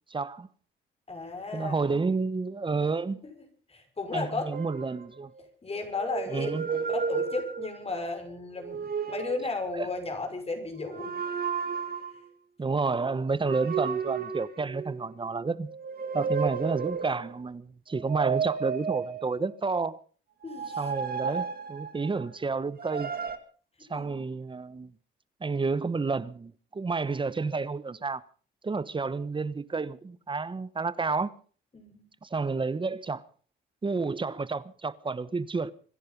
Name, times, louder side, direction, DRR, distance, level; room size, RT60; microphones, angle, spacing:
voice 1, 0.1-0.5 1.5-3.2 4.1-5.3 6.3-6.7 9.7-9.9 12.6-15.7 16.1-20.0 20.8-23.1 23.9-24.9 25.4-28.2 28.6-31.3 32.2-33.2 33.8-35.7, right 4 dB, 25° right, 1.1 m, -30 dB
voice 2, 1.1-1.9 3.7-4.5 5.6-11.2 20.4-20.8 23.9-24.2 31.7-32.0, left 3 dB, 30° left, 5.8 m, -34 dB
sound 1, 4.5-5.5 6.0-8.0 8.6-9.5 10.8-12.3 13.4-15.1 15.7-17.4 18.0-19.6 20.4-22.3 22.8-23.4, right 6 dB, 50° right, 2.2 m, -33 dB
25.0 x 10.5 x 5.4 m
cardioid pair, 90°, 20 cm